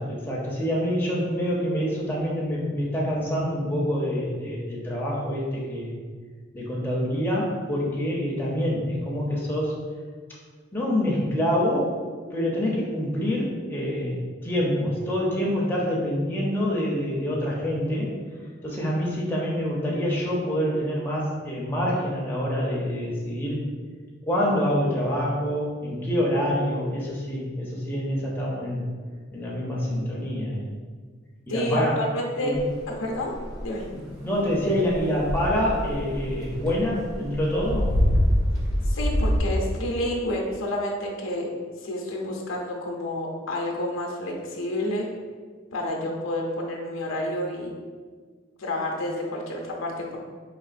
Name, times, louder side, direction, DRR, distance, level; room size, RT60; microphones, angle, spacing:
voice 1, 0.0-5.9 6.5-9.8 10.7-11.9 12.3-18.1 18.6-23.6 24.2-28.9 29.3-30.7 31.5-32.0 32.4-32.6 34.2-37.9, equal, 10° left, -5 dB, 0.5 m, -26 dB
voice 2, 31.5-32.6 32.9-33.3 33.6-33.8 38.8-41.5 41.8-45.1 45.7-47.7 48.6-50.2, left 1 dB, 70° left, 0 dB, 0.6 m, -29 dB
sound 1, 32.6-39.4, equal, 50° right, 0.7 m, -26 dB
3.9 x 2.9 x 2.5 m, 1.5 s
head